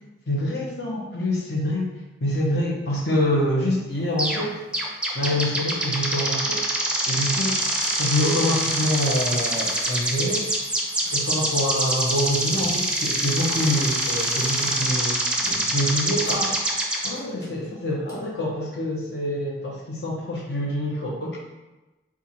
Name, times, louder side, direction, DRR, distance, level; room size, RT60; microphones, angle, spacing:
voice 1, 0.3-1.9 2.2-4.6 5.1-6.6 7.1-7.5 8.0-10.6 11.1-15.1 15.7-16.5 17.0-21.4, left 1 dB, 65° left, -3 dB, 1.0 m, -26 dB
sound 1, 4.2-4.4 4.7-17.1, right 1 dB, 5° right, 0.5 m, -25 dB
sound 2, 7.2-9.3 9.7-10.6 10.9-11.3 12.3-13.1 13.6-14.1 15.3-16.9 17.1-18.4, equal, 20° left, 1.3 m, -44 dB
4.4 x 2.5 x 4.3 m, 1.1 s
head